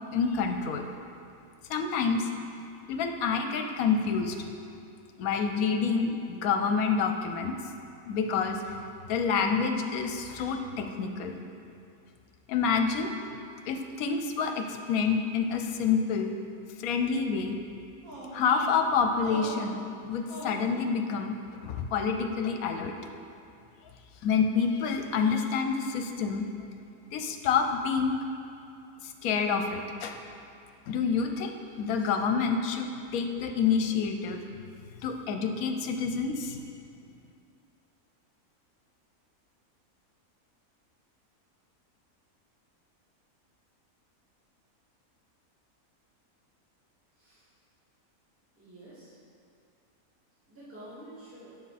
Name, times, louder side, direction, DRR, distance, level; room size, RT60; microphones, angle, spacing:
voice 1, 0.1-0.8 1.7-2.3 2.9-4.4 5.2-7.5 8.1-8.6 9.1-11.4 12.5-13.1 13.7-16.3 16.8-17.6 18.3-19.8 20.0-21.4 21.6-22.9 24.2-26.5 27.1-28.2 29.0-30.1 30.9-32.9 33.1-34.4 35.0-36.6, left 5 dB, 75° left, 5 dB, 1.1 m, -28 dB
sound 1, 18.0-18.8 19.2-19.7 20.3-20.7, right 1 dB, 80° right, 2.1 m, -41 dB
voice 2, 47.1-47.5 48.6-49.2 50.5-51.5, right 1 dB, 10° right, -12 dB, 2.1 m, -48 dB
9.5 x 6.5 x 4.1 m, 2.5 s
omnidirectional pair, 1.5 m